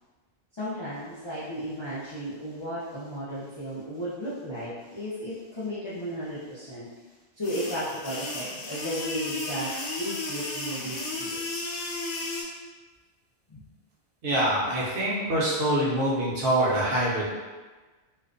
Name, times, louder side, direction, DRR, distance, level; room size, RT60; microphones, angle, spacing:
voice 1, 0.5-6.9 7.4-9.7 10.0-11.4 13.5-13.6, equal, 40° left, -12 dB, 0.4 m, -34 dB
sound 1, 7.4-12.4, left 2 dB, 70° left, 0.8 m, -34 dB
voice 2, 14.2-17.3, right 1 dB, 65° right, -6 dB, 0.8 m, -25 dB
2.4 x 2.1 x 2.4 m, 1.3 s
omnidirectional pair, 1.1 m